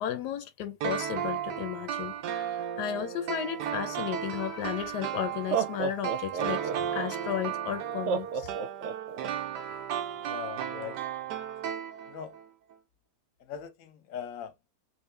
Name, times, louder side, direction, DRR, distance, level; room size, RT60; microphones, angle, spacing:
voice 1, 0.0-8.5, left 11 dB, 85° left, 1.2 m, -34 dB
sound 1, 0.8-12.5 12.7-12.8, right 10 dB, 90° right, 1.3 m, -35 dB
Laughter, 4.6-4.7 5.3-7.1 8.1-9.3, right 6 dB, 75° right, 0.6 m, -31 dB
voice 2, 10.2-11.0 12.1-12.4 13.4-14.5, left 8 dB, 60° left, 1.1 m, -40 dB
3.2 x 3.0 x 3.2 m
omnidirectional pair, 1.7 m